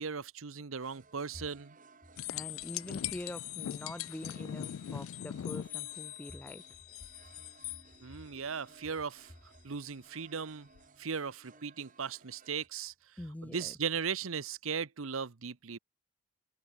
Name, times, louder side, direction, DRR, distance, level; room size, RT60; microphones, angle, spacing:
voice 1, 0.0-1.8 8.0-9.3 9.6-10.7 11.0-15.8, right 6 dB, 80° right, 0.9 m, -38 dB
sound 1, 0.8-12.7, right 4 dB, 40° right, 2.4 m, -61 dB
sound 2, 2.2-7.8 10.7-10.8, left 12 dB, 80° left, 0.3 m, -41 dB
voice 2, 2.3-6.6 13.2-13.7, left 1 dB, 10° left, 0.4 m, -44 dB
head